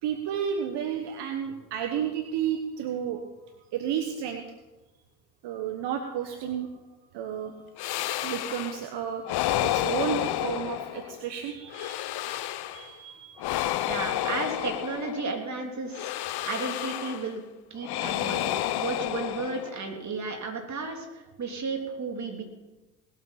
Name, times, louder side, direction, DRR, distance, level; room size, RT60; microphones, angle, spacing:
voice 1, 0.0-3.2 3.7-4.4 5.4-6.7 7.1-7.5 8.2-13.6, right 9 dB, 65° right, 5 dB, 1.3 m, -32 dB
sound 1, 7.8-8.9 9.2-11.2 11.7-12.9 13.4-15.4 15.9-17.3 17.8-19.9, left 13 dB, 60° left, 0.8 m, -30 dB
voice 2, 13.8-16.1 16.5-17.4 17.7-22.4, right 4 dB, 40° right, 2 dB, 3.3 m, -33 dB
19.5 x 7.5 x 5.8 m, 1.1 s
hypercardioid pair, 60°, 45 cm